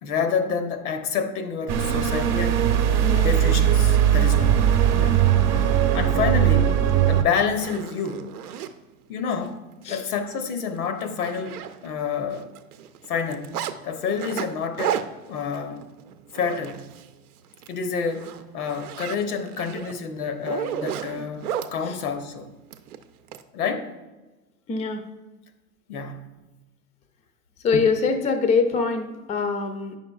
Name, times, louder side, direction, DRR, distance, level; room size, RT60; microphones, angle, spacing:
voice 1, 0.0-2.7 3.2-5.2 5.9-6.8 7.1-8.3 9.1-12.5 13.1-13.6 13.8-15.0 15.3-15.8 16.3-16.9 17.7-22.5 23.5-23.9 25.9-26.4, left 6 dB, 75° left, 0.9 m, -28 dB
sound 1, 1.7-7.2, right 10 dB, 40° right, 0.8 m, -19 dB
Zipper (clothing), 6.9-7.0 7.4-8.7 9.3-9.5 9.8-10.0 10.3-10.4 10.8-12.1 12.3-13.7 14.2-17.1 17.5-17.7 18.1-21.7 22.7-23.4, right 9 dB, 75° right, 0.7 m, -33 dB
voice 2, 24.7-25.0 27.6-30.0, left 4 dB, 15° left, 0.5 m, -23 dB
9.4 x 5.8 x 2.3 m
hypercardioid pair, 105°, 45 cm